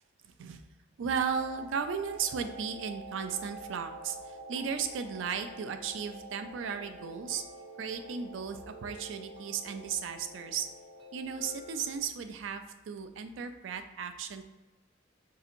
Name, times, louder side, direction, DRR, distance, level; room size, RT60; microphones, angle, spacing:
voice 1, 0.2-0.6 1.0-7.4 7.8-10.7 11.1-14.4, right 6 dB, 70° right, 8 dB, 0.4 m, -35 dB
sound 1, 1.3-12.0, right 2 dB, 25° right, 0.6 m, -47 dB
5.0 x 2.7 x 2.5 m, 1.1 s
head